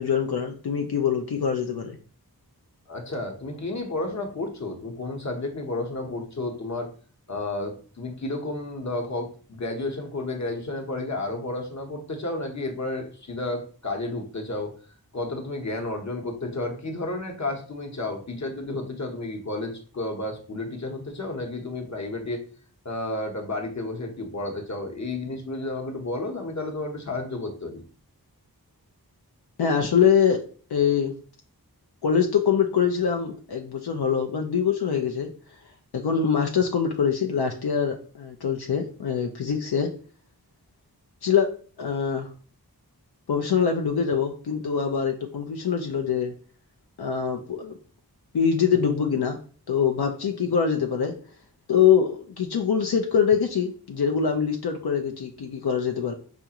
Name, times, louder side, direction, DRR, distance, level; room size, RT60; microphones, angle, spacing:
voice 1, 0.0-1.9 29.6-30.4 30.7-31.1 32.0-35.3 35.9-39.9 41.2-41.5 41.8-42.3 43.3-46.3 47.0-47.7 48.3-49.4 49.7-51.1 51.7-56.1, left 7 dB, 85° left, 3 dB, 0.5 m, -24 dB
voice 2, 2.9-6.9 7.3-14.7 15.1-22.4 22.8-27.8, left 2 dB, 45° left, 3 dB, 0.9 m, -32 dB
5.0 x 2.4 x 2.8 m, 0.41 s
wide cardioid pair, 50°, 38 cm